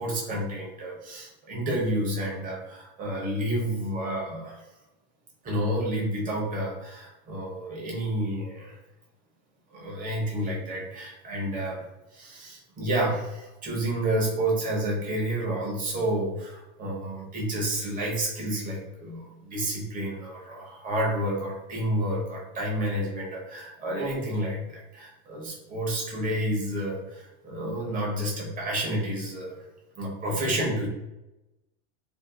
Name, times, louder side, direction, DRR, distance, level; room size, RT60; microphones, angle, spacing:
voice 1, 0.0-4.6 5.4-8.8 9.7-11.8 12.1-29.6 30.0-30.9, right 1 dB, 25° right, -3 dB, 0.8 m, -30 dB
2.6 x 2.3 x 2.3 m, 0.98 s
supercardioid pair, 145°, 35 cm